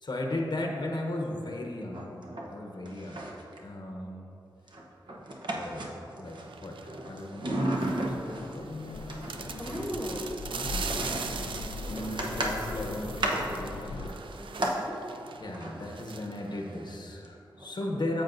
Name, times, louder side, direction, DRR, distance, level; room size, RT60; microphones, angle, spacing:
voice 1, 0.0-2.2 2.5-3.2 3.6-4.3 5.5-7.6 8.1-9.1 10.6-10.9 11.3-14.2 15.4-18.2, left 1 dB, 60° left, 1 dB, 0.9 m, -36 dB
sound 1, 1.9-2.6 2.9-3.6 4.7-6.4 6.8-8.5 9.0-14.8 15.5-15.7 17.2-17.3 17.6-17.7, right 1 dB, 65° right, 1.0 m, -34 dB
sound 2, 6.3-16.9, right 5 dB, 90° right, 0.4 m, -42 dB
sound 3, 7.4-14.1, left 3 dB, 80° left, 0.3 m, -40 dB
voice 2, 9.6-11.0 11.6-11.9 14.4-15.0 17.8-18.0, equal, ahead, 0 dB, 1.2 m, -39 dB
13.5 x 5.2 x 2.6 m, 2.7 s
cardioid pair, 45°, 8 cm